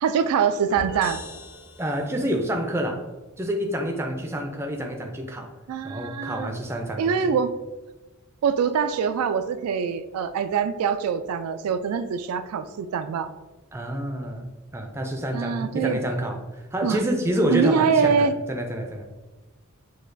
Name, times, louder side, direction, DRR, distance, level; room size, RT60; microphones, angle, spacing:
voice 1, 0.0-1.2 5.7-6.5 7.0-7.5 8.4-13.3 15.3-16.0 16.8-17.0 17.5-18.4, right 6 dB, 85° right, 14 dB, 0.3 m, -24 dB
sound 1, 0.7-2.4, left 2 dB, 60° left, 0.9 m, -39 dB
voice 2, 1.8-3.0 3.4-5.5 5.8-7.3 13.7-16.4 16.7-19.0, equal, 10° right, 2 dB, 0.4 m, -28 dB
6.2 x 2.3 x 2.5 m, 1.2 s
head